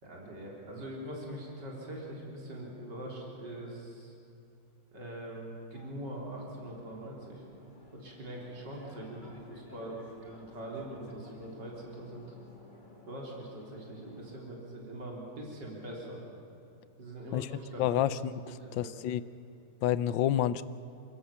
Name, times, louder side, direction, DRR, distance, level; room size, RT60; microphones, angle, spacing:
voice 1, 0.0-4.1 4.9-7.4 7.9-12.3 13.1-16.2 17.0-18.0 18.5-18.9, right 1 dB, 65° right, -2 dB, 4.3 m, -43 dB
sound 1, 5.7-14.4, left 1 dB, 25° left, 2.7 m, -55 dB
voice 2, 17.8-18.3 18.7-19.2 19.8-20.6, left 11 dB, 80° left, 15 dB, 1.4 m, -28 dB
29.0 x 16.5 x 7.1 m, 2.7 s
omnidirectional pair, 2.0 m